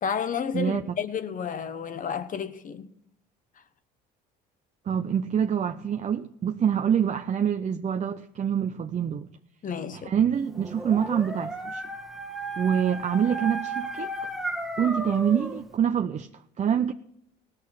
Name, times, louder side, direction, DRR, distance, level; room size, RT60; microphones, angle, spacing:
voice 1, 0.0-2.9 9.6-10.1, left 7 dB, 40° left, 1.1 m, -31 dB
voice 2, 0.5-1.0 4.9-9.3 9.9-11.8 12.6-14.1 14.8-16.9, right 8 dB, 35° right, 0.6 m, -26 dB
Dog, 10.5-15.6, right 1 dB, ahead, 1.3 m, -34 dB
18.0 x 6.6 x 5.8 m
supercardioid pair, 75°, 20 cm